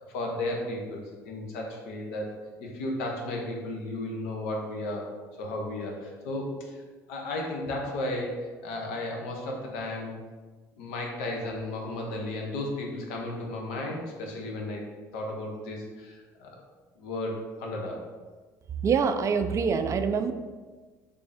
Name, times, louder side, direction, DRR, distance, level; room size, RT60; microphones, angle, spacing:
voice 1, 0.1-2.3 2.6-5.1 5.4-6.7 7.1-10.1 10.8-14.9 15.1-16.5 17.0-18.1, left 1 dB, 80° left, 0 dB, 0.7 m, -34 dB
voice 2, 18.8-20.3, right 6 dB, 35° right, 8 dB, 0.3 m, -25 dB
3.3 x 2.6 x 3.3 m, 1.3 s
hypercardioid pair, 75°, 9 cm